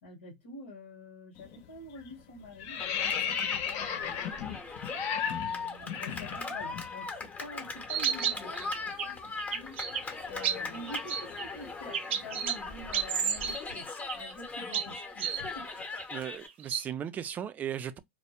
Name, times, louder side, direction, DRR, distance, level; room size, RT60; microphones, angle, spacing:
voice 1, 0.0-4.6 5.2-9.8 10.3-13.9 14.1-15.7, left 1 dB, 80° left, 1.1 m, -47 dB
sound 1, 1.4-1.7 2.0-6.9 7.2-7.4 7.7-11.7, left 8 dB, 45° left, 0.5 m, -37 dB
Cheering, 2.8-16.5, left 4 dB, 20° left, 0.8 m, -39 dB
sound 2, 7.9-9.1 9.4-10.0 10.4-11.4 11.9-12.6 12.9-13.6 14.0-14.3 14.7-15.5 16.0-16.1 16.5-16.8, right 8 dB, 70° right, 0.6 m, -31 dB
voice 2, 16.1-18.0, right 9 dB, 25° right, 0.3 m, -37 dB
2.2 x 2.1 x 2.8 m
hypercardioid pair, 110°, 7 cm